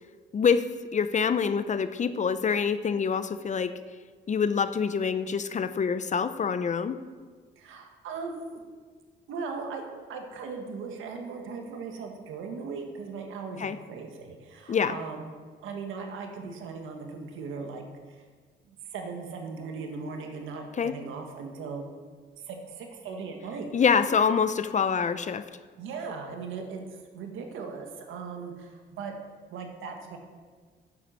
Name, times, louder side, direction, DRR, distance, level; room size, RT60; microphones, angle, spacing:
voice 1, 0.3-0.6 0.9-3.7 4.3-7.0 13.6-13.8 14.7-15.0 20.8-20.9 23.7-25.4, left 6 dB, 35° left, 12 dB, 0.6 m, -25 dB
voice 2, 7.6-8.6 9.3-9.8 10.1-15.3 15.6-18.2 18.7-21.9 22.5-23.8 25.8-26.8 27.1-29.1 29.5-30.2, right 4 dB, 85° right, 3 dB, 1.6 m, -38 dB
9.5 x 7.8 x 6.3 m, 1.5 s
cardioid pair, 90°, 20 cm